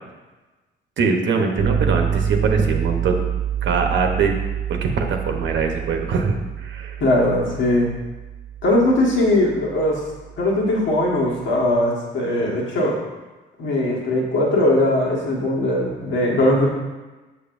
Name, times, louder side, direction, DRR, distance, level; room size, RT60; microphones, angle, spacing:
voice 1, 1.0-3.2 3.6-4.4 4.7-7.0, right 4 dB, 70° right, 3 dB, 0.9 m, -22 dB
sound 1, 1.6-11.5, right 8 dB, 35° right, 0.7 m, -27 dB
voice 2, 7.0-7.9 8.6-10.0 10.4-13.0 13.6-16.7, left 1 dB, 75° left, -3 dB, 1.6 m, -20 dB
7.0 x 6.5 x 2.6 m, 1.2 s
cardioid pair, 90°, 20 cm